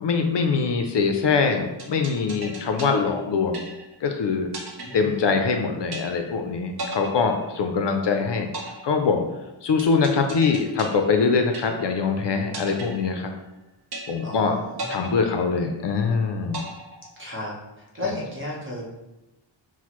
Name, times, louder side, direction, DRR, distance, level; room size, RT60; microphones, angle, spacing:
voice 1, 0.0-3.6 4.0-4.5 4.9-8.5 8.8-9.2 9.6-13.3 14.1-14.6 14.9-16.6 18.0-18.1, left 5 dB, 65° left, 5 dB, 0.5 m, -23 dB
sound 1, 1.8-4.1 4.5-5.6 5.9-6.5 6.8-8.1 8.5-12.1 12.5-13.6 13.9-14.5 14.8-16.1 16.5-17.6, right 2 dB, 50° right, 0.9 m, -37 dB
voice 2, 4.8-5.3 14.2-15.1 17.2-18.8, left 1 dB, 25° right, -4 dB, 1.0 m, -34 dB
6.1 x 2.1 x 3.0 m, 0.96 s
wide cardioid pair, 155°, 47 cm